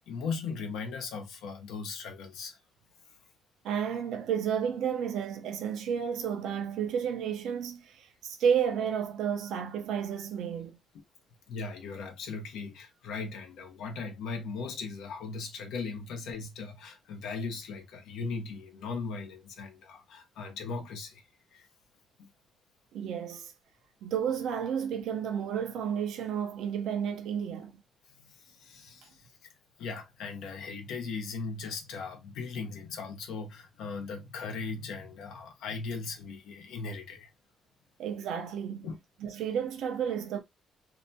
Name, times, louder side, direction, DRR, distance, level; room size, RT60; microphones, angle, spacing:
voice 1, 0.0-2.6 11.5-21.2 21.5-21.7 22.2-22.3 28.1-29.3 29.8-37.3 38.8-39.0, left 4 dB, 85° left, 0.7 m, -38 dB
voice 2, 3.6-10.8 22.9-23.5 24.0-27.7 38.0-38.9 39.2-40.4, right 8 dB, 80° right, 0.6 m, -31 dB
2.8 x 2.2 x 2.6 m
cardioid pair, 90°, 0 cm